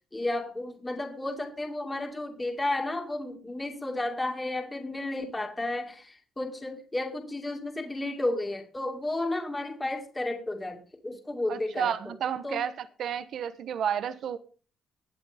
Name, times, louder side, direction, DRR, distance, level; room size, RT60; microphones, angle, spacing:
voice 1, 0.1-12.1 12.4-12.6, left 2 dB, 15° left, 3 dB, 2.2 m, -32 dB
voice 2, 11.5-14.4, right 8 dB, 70° right, 12 dB, 1.0 m, -31 dB
20.5 x 8.0 x 3.5 m, 0.38 s
cardioid pair, 90°, 0 cm